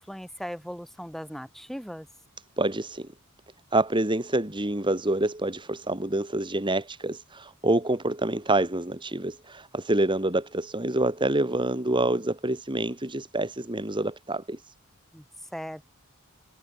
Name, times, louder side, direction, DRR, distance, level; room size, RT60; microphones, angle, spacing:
voice 1, 0.0-2.1 15.1-15.2 15.5-15.8, equal, ahead, 6.6 m, -38 dB
voice 2, 2.6-3.1 3.7-14.7, right 1 dB, 20° right, 2.1 m, -27 dB
head